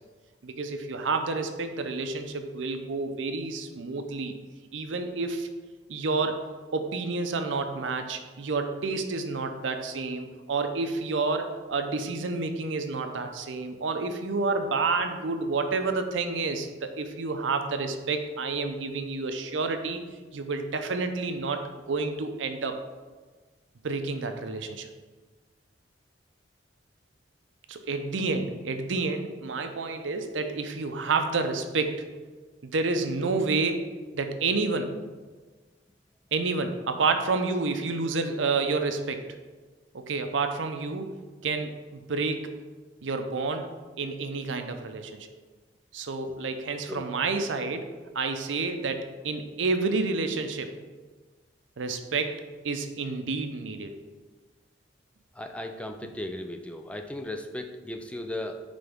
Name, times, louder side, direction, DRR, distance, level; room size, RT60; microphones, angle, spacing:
voice 1, 0.4-4.3 4.7-5.5 5.9-20.0 20.3-21.6 21.9-22.8 23.8-24.9 27.7-32.1 32.6-33.9 34.1-34.9 36.3-39.2 40.1-41.1 41.4-42.5 43.0-43.7 44.0-45.3 45.9-47.9 48.1-50.7 51.8-54.0, right 3 dB, 90° right, 7 dB, 0.6 m, -29 dB
voice 2, 55.3-58.6, left 1 dB, 5° left, 5 dB, 0.3 m, -36 dB
9.2 x 3.4 x 3.5 m, 1.4 s
head